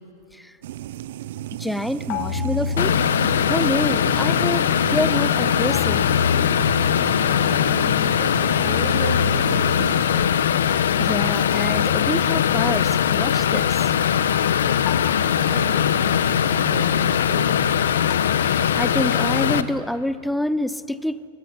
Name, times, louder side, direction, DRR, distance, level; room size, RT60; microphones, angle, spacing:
sound 1, 0.6-10.1, right 13 dB, 60° right, 0.6 m, -34 dB
voice 1, 1.6-2.9 3.4-6.1 10.6-13.9 18.4-21.3, left 1 dB, ahead, 14 dB, 0.5 m, -27 dB
sound 2, 2.1-3.9 5.7-7.5 8.6-10.4 11.7-13.1 14.9-16.1 18.1-19.3, left 6 dB, 35° left, 1.8 m, -31 dB
sound 3, 2.8-19.6, left 9 dB, 85° left, 1.1 m, -20 dB
voice 2, 7.0-10.3 15.1-17.6, right 2 dB, 40° right, -2 dB, 6.3 m, -34 dB
23.5 x 19.5 x 9.5 m, 2.7 s
supercardioid pair, 155°, 0 cm